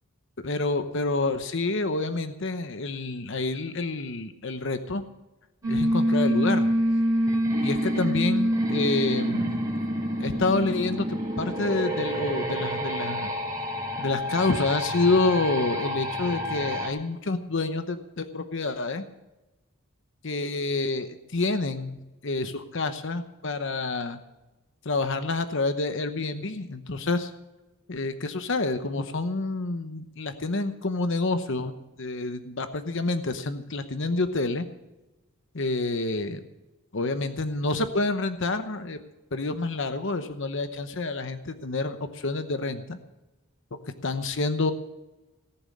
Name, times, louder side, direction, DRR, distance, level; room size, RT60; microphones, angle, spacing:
voice 1, 0.4-5.0 5.7-6.7 7.6-9.5 10.2-13.3 14.0-19.0 20.2-24.2 24.8-27.3 27.9-31.7 32.0-34.7 35.5-36.4 36.9-39.0 39.3-43.0 43.7-44.7, left 3 dB, 55° left, 9 dB, 0.9 m, -28 dB
sound 1, 5.6-16.9, equal, 15° right, 3.3 m, -27 dB
18.5 x 7.0 x 8.5 m, 1.0 s
head